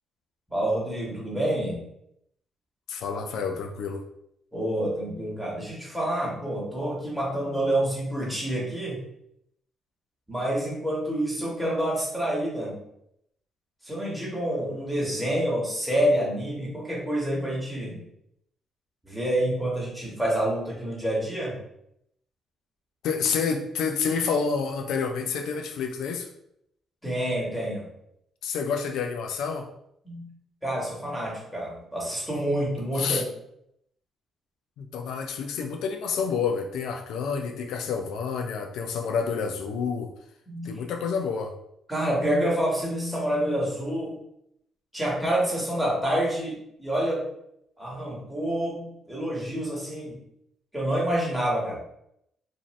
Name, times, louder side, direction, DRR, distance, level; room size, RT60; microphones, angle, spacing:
voice 1, 0.5-1.8 4.5-9.0 10.3-12.8 13.8-18.0 19.0-21.6 27.0-27.9 30.0-30.3 30.6-33.2 40.5-40.8 41.9-44.1 44.9-47.2 47.8-50.2 50.7-51.8, right 1 dB, 5° right, -5 dB, 1.3 m, -28 dB
voice 2, 2.9-4.0 23.0-26.3 28.4-29.7 32.9-33.2 34.8-40.1 40.6-41.5, left 6 dB, 85° left, 5 dB, 0.3 m, -29 dB
2.6 x 2.5 x 3.0 m, 0.76 s
cardioid pair, 90°, 0 cm